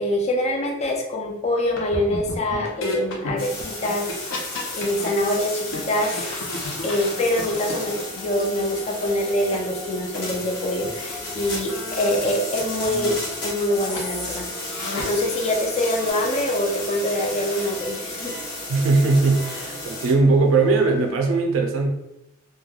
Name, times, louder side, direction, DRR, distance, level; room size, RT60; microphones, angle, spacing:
voice 1, 0.0-6.3 6.8-18.3, left 1 dB, 30° left, 1 dB, 0.4 m, -25 dB
sound 1, 1.7-5.1 5.5-8.6 9.0-9.1 9.5-9.6 9.9-10.0 10.3-10.4 10.8-10.9 11.2-12.3 12.6-13.1 13.8-14.0 14.5-15.3 15.5-16.1, left 2 dB, 75° left, 0.6 m, -34 dB
sound 2, 3.4-20.1, left 2 dB, 50° left, 0.9 m, -33 dB
sound 3, 7.2-21.1, equal, 5° left, 0.8 m, -40 dB
voice 2, 18.7-21.9, right 3 dB, 75° right, 3 dB, 0.4 m, -19 dB
3.0 x 2.2 x 2.3 m, 0.90 s
head